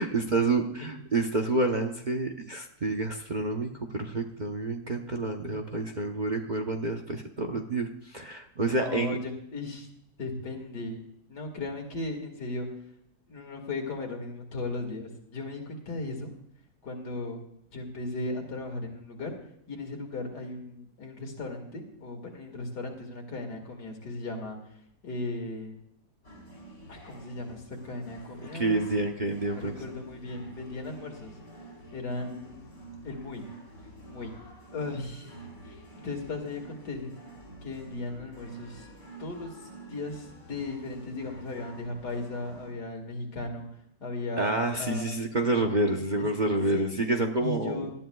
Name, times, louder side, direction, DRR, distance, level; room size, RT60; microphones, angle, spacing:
voice 1, 0.0-9.2 28.5-29.7 44.4-47.9, right 2 dB, 40° right, 3 dB, 0.8 m, -28 dB
voice 2, 8.6-9.9 10.2-11.0 11.3-12.7 13.3-16.3 16.8-17.4 17.7-19.4 19.7-24.6 25.0-25.8 26.9-28.8 29.5-31.3 31.9-32.8 33.0-33.4 34.1-34.3 34.7-37.1 37.6-38.9 39.2-43.7 44.0-45.2 46.2-46.9 47.4-47.9, left 2 dB, 85° left, 3 dB, 2.7 m, -37 dB
sound 1, 26.2-42.7, right 2 dB, 65° left, 4.5 m, -48 dB
18.5 x 12.5 x 2.3 m, 0.74 s
omnidirectional pair, 1.7 m